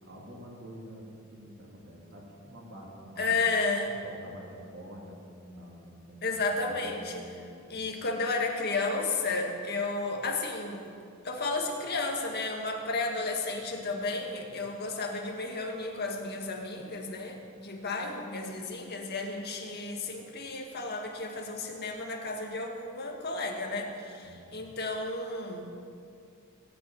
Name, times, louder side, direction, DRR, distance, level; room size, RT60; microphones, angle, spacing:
voice 1, 0.0-3.4 4.0-6.4 6.7-7.9 24.2-24.7, equal, 65° right, -4 dB, 2.9 m, -47 dB
voice 2, 3.2-4.0 6.2-7.4 7.7-10.9 11.2-25.7, left 3 dB, 50° left, 1 dB, 1.9 m, -32 dB
17.5 x 7.0 x 9.2 m, 2.5 s
head